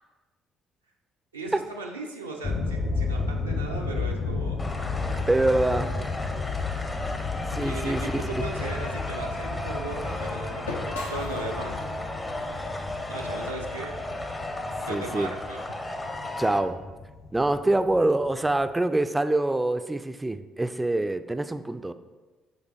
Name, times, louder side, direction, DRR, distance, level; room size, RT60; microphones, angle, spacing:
voice 1, 1.3-4.6 7.6-11.8 13.1-13.9 14.8-15.6, right 2 dB, 85° right, -2 dB, 0.4 m, -37 dB
sound 1, 2.4-18.7, left 3 dB, 55° left, 1.6 m, -33 dB
sound 2, 4.6-16.6, left 1 dB, 20° left, 0.6 m, -35 dB
voice 2, 5.3-5.9 7.5-8.4 14.9-15.3 16.4-16.8 17.3-21.9, right 2 dB, 10° right, 11 dB, 0.3 m, -25 dB
sound 3, 7.9-14.0, left 2 dB, 80° left, 0.6 m, -44 dB
8.5 x 3.9 x 3.1 m, 1.3 s
figure-of-eight pair, 50°, 0 cm